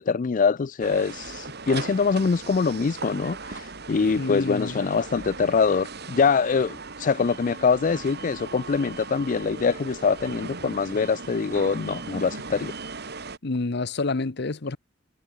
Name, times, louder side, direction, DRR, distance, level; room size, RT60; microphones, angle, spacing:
voice 1, 0.0-12.7, left 5 dB, 45° left, 0.4 m, -24 dB
sound 1, 0.8-13.4, right 4 dB, 60° right, 3.2 m, -38 dB
voice 2, 4.2-4.8 13.4-14.8, left 3 dB, 60° left, 0.9 m, -28 dB
head